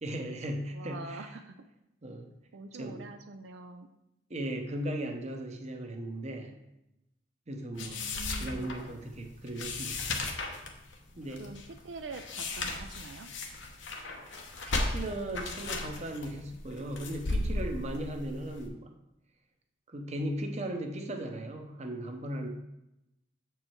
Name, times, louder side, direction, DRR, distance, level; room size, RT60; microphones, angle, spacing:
voice 1, 0.0-1.3 2.0-2.3 2.7-3.0 4.3-6.5 7.5-8.0 8.4-10.1 11.2-11.5 14.7-18.9 19.9-22.5, right 1 dB, 35° right, 4 dB, 0.8 m, -37 dB
voice 2, 0.7-1.5 2.5-3.9 7.8-8.7 11.4-13.3, right 3 dB, 75° right, 6 dB, 0.4 m, -45 dB
sound 1, 7.8-18.7, left 2 dB, 80° left, 1.0 m, -36 dB
7.5 x 4.7 x 4.6 m, 0.90 s
head